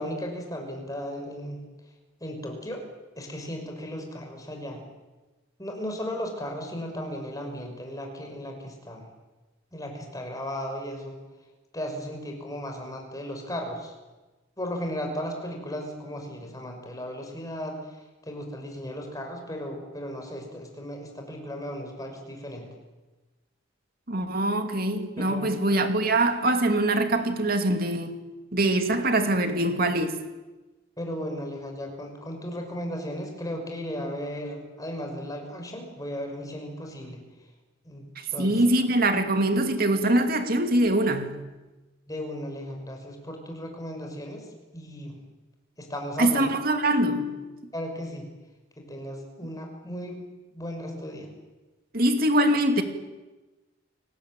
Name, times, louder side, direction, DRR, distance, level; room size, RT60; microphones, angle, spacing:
voice 1, 0.0-1.6 2.2-2.8 3.2-4.8 5.6-9.1 9.7-11.2 11.7-13.9 14.6-22.7 25.2-25.5 29.3-29.4 31.0-37.2 37.8-38.0 38.3-38.6 42.1-44.5 44.7-45.2 45.8-46.5 47.7-48.2 48.8-50.2 50.5-51.3, equal, 15° left, 5.9 m, -35 dB
voice 2, 24.1-28.2 28.5-30.2 38.4-41.4 46.2-47.4 51.9-52.8, right 1 dB, 45° right, 2.6 m, -23 dB
30.0 x 19.0 x 9.0 m
head